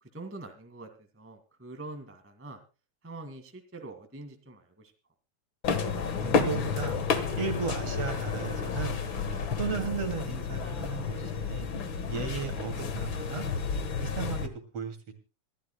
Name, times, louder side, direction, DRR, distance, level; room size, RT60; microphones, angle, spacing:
voice 1, 0.0-2.6 3.0-4.9 7.8-8.0 12.7-13.1, right 2 dB, 5° right, 6 dB, 1.4 m, -45 dB
sound 1, 5.6-14.5, left 5 dB, 50° left, 1.8 m, -31 dB
voice 2, 6.2-7.0 7.4-9.0 9.6-11.7 12.1-13.5 14.0-14.4 14.7-15.1, right 5 dB, 55° right, 6 dB, 3.5 m, -35 dB
25.5 x 13.0 x 2.2 m, 0.32 s
omnidirectional pair, 3.4 m